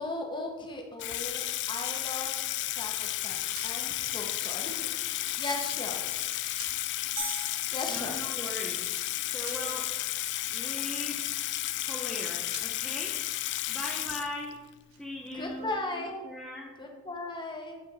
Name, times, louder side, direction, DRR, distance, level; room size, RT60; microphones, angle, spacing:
voice 1, 0.0-2.9 3.2-6.1 7.7-8.2 15.3-16.3 16.8-17.8, left 2 dB, 20° left, 2 dB, 1.1 m, -37 dB
Water tap faucet / Sink (filling or washing), 1.0-14.7, left 15 dB, 50° left, 0.3 m, -33 dB
sound 1, 3.1-3.7 4.7-4.8 5.6-6.3 6.5-6.7 7.9-8.0 8.2-8.4 8.7-9.6 11.5-12.2 12.5-12.7 14.2-14.3 14.6-15.0, right 5 dB, 65° right, 1.2 m, -47 dB
sound 2, 7.2-8.6, right 2 dB, 20° right, 1.7 m, -39 dB
voice 2, 7.9-8.9 9.3-10.0 10.5-11.3 11.8-13.2 13.7-14.6 15.0-15.7 16.0-16.8, left 1 dB, ahead, -3 dB, 0.6 m, -39 dB
8.8 x 4.4 x 4.2 m, 1.2 s
head